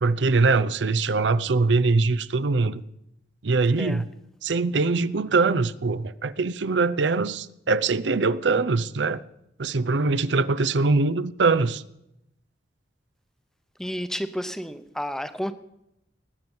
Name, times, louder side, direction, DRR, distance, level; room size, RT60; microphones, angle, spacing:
voice 1, 0.0-2.8 3.4-4.1 4.4-9.2 9.6-11.8, right 3 dB, 85° right, 0.6 m, -22 dB
voice 2, 13.8-15.5, equal, 5° left, 0.8 m, -31 dB
19.5 x 9.5 x 7.2 m
head